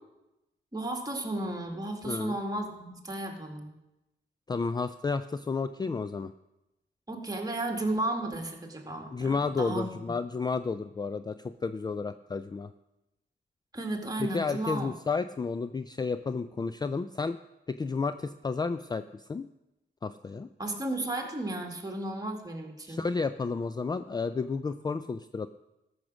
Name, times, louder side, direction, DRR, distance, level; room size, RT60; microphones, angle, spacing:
voice 1, 0.7-3.7 7.1-10.1 13.7-14.9 20.6-23.0, right 1 dB, 20° right, 2 dB, 2.0 m, -34 dB
voice 2, 2.0-2.4 4.5-6.3 9.1-12.7 14.2-17.4 17.7-19.5 20.0-20.5 22.8-25.5, left 4 dB, 20° left, 12 dB, 0.3 m, -31 dB
13.5 x 6.3 x 6.2 m, 0.96 s
cardioid pair, 90°, 19 cm